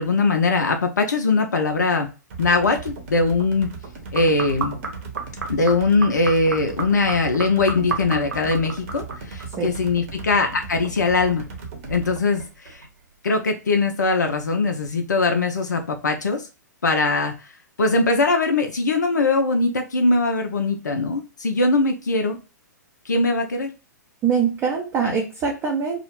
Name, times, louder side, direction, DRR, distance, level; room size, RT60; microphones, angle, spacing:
voice 1, 0.0-2.1 2.4-3.7 4.1-4.8 5.5-11.4 11.9-12.8 13.2-16.5 16.8-17.5 17.8-22.4 23.1-23.7 25.0-25.2, left 3 dB, 70° left, 5 dB, 0.4 m, -21 dB
sound 1, 2.3-12.2, right 4 dB, 45° right, 0.7 m, -37 dB
sound 2, 4.2-9.6 9.8-10.9 11.2-13.1 13.7-13.8, right 4 dB, 70° right, 0.9 m, -33 dB
voice 2, 24.2-26.0, right 6 dB, 20° right, -1 dB, 0.4 m, -23 dB
2.3 x 2.0 x 2.9 m, 0.31 s
figure-of-eight pair, 115°, 10 cm